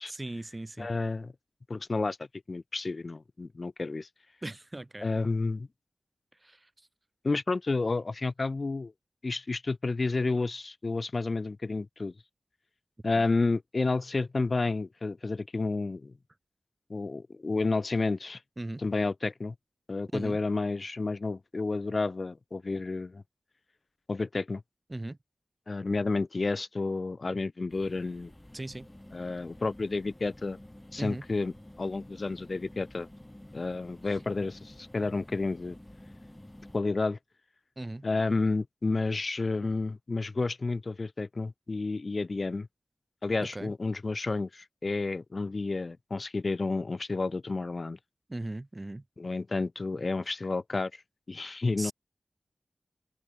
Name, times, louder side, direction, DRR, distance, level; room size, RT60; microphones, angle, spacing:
voice 1, 0.1-0.9 4.4-5.1 6.4-6.7 13.1-13.2 18.6-18.8 20.1-20.4 24.9-25.2 28.5-28.9 31.0-31.2 37.8-38.1 43.4-43.7 48.3-49.0 51.8-51.9, right 2 dB, 25° right, 2.6 m, -38 dB
voice 2, 0.8-1.3 1.7-4.1 5.0-5.7 7.2-8.9 9.2-12.1 13.0-16.1 16.9-18.4 18.8-19.5 19.9-23.2 24.1-24.6 25.7-28.3 29.1-30.6 30.9-31.5 31.8-33.1 33.5-35.8 36.7-37.2 38.0-42.7 43.2-48.0 49.2-51.0 51.3-51.9, left 3 dB, 50° left, 0.8 m, -31 dB
sound 1, 27.7-36.8, left 1 dB, 15° left, 7.4 m, -50 dB
open air
wide cardioid pair, 85°, 0 cm